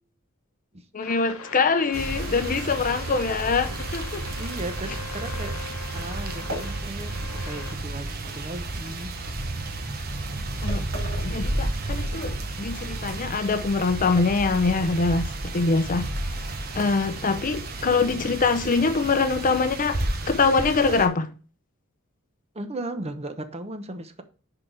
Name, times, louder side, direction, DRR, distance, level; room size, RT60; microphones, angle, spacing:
voice 1, 0.9-4.3 10.6-10.9 11.2-16.1 16.7-21.3, left 4 dB, 40° left, 0.6 m, -24 dB
sound 1, 1.0-7.7, left 5 dB, 70° left, 1.0 m, -41 dB
sound 2, 1.3-7.4 7.7-9.1 9.8-10.0 10.4-10.5 10.7-12.4 12.6-13.9 14.2-14.8 15.1-15.2 15.5-18.0, equal, 65° right, 3.8 m, -45 dB
sound 3, 1.9-21.1, right 2 dB, 45° right, 1.2 m, -32 dB
voice 2, 4.4-5.5 5.9-9.1 22.5-24.2, right 2 dB, 30° right, 0.9 m, -36 dB
10.5 x 4.0 x 3.4 m
head